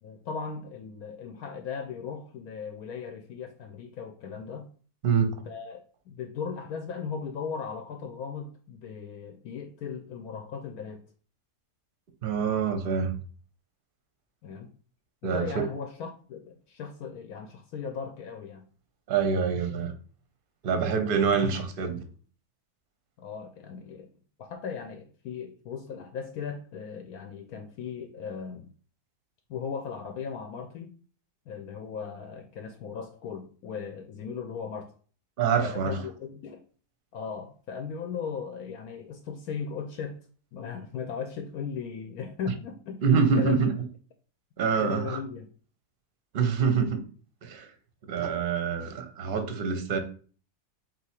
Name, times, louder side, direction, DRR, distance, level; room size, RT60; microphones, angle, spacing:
voice 1, 0.0-4.7 5.5-11.0 14.4-14.7 15.2-18.6 23.2-24.1 24.4-28.7 29.5-30.9 31.5-34.9 35.6-36.6 37.1-40.2 40.5-43.0 43.3-43.6 44.8-45.5, left 6 dB, 75° left, 5 dB, 1.0 m, -37 dB
voice 2, 5.0-5.4 12.2-13.1 15.2-15.6 19.1-19.9 20.6-22.0 35.4-36.0 43.0-43.7 44.6-45.2 46.3-47.0 47.4-47.7 48.1-50.0, right 6 dB, 50° right, 7 dB, 0.7 m, -25 dB
3.9 x 2.9 x 4.2 m, 0.41 s
omnidirectional pair, 1.7 m